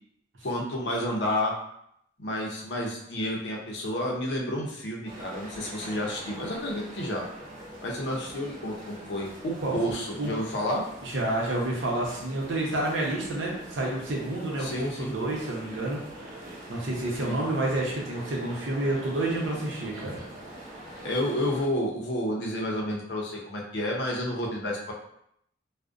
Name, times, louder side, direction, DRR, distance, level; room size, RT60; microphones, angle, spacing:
voice 1, 0.4-1.5 2.2-7.2 7.8-10.8 14.6-15.2 17.2-17.4 21.0-24.9, left 1 dB, 65° left, -1 dB, 0.6 m, -30 dB
sound 1, 5.0-21.7, right 1 dB, 40° right, 0.6 m, -44 dB
voice 2, 11.0-16.3 16.7-20.2, right 2 dB, 85° right, -2 dB, 0.7 m, -29 dB
2.5 x 2.1 x 2.4 m, 0.73 s
head